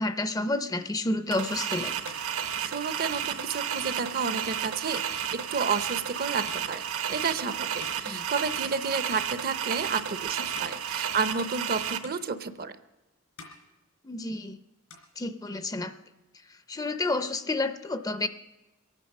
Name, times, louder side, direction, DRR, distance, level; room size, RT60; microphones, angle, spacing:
voice 1, 0.0-1.9 8.1-8.2 14.0-14.6 15.2-15.9 16.7-18.3, left 2 dB, 15° left, 11 dB, 0.5 m, -30 dB
sound 1, 1.3-12.0, right 8 dB, 70° right, 1.0 m, -32 dB
sound 2, 2.0-8.9 9.1-9.8 10.3-11.8 12.0-12.9 13.2-14.4 14.7-15.8, left 4 dB, 85° left, 3.5 m, -52 dB
voice 2, 2.6-6.8 7.1-7.7 8.0-12.7, right 5 dB, 45° right, 13 dB, 0.7 m, -31 dB
22.5 x 9.0 x 6.5 m, 1.1 s
head